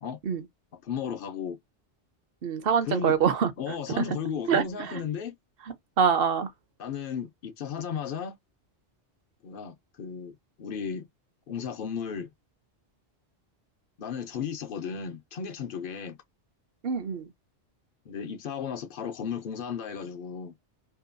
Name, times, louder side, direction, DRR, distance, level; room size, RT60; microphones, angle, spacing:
voice 1, 0.8-1.6 2.9-3.1 3.6-5.3 6.8-8.4 9.4-11.1 11.5-12.3 14.0-16.2 18.1-20.5, left 7 dB, 60° left, 0.6 m, -34 dB
voice 2, 2.4-4.0 4.5-5.0 6.0-6.5 16.8-17.3, right 7 dB, 60° right, 0.7 m, -25 dB
2.8 x 2.2 x 2.4 m
omnidirectional pair, 1.2 m